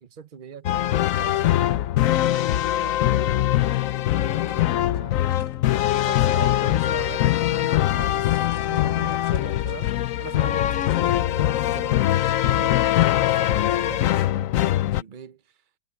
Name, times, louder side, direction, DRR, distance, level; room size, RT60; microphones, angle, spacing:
voice 1, 0.0-3.4 4.1-5.3 6.0-15.4, right 8 dB, 45° right, 0.6 m, -42 dB
sound 1, 0.6-15.0, left 13 dB, 75° left, 0.7 m, -22 dB
sound 2, 4.3-10.2 10.5-14.0, left 2 dB, 50° left, 8.5 m, -55 dB
omnidirectional pair, 2.1 m